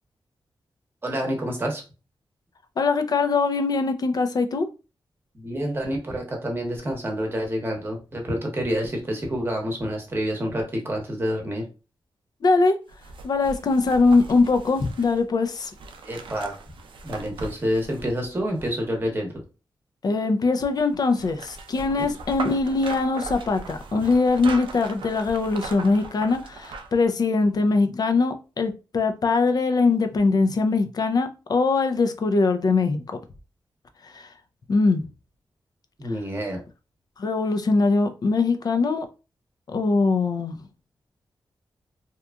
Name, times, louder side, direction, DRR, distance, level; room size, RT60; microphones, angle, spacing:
voice 1, 1.0-1.8 5.3-11.6 16.1-16.6 17.0-19.3 36.0-36.6, equal, 25° right, 0.9 m, -28 dB
voice 2, 2.8-4.7 12.4-12.7 13.2-15.7 20.0-33.2 34.0-34.3 34.7-35.0 37.2-39.1 39.7-40.6, left 3 dB, 50° left, 0.4 m, -22 dB
sound 1, 12.9-19.1 20.7-27.0 27.4-27.5, right 3 dB, 80° right, 0.4 m, -39 dB
2.8 x 2.4 x 2.2 m
wide cardioid pair, 115°, 8 cm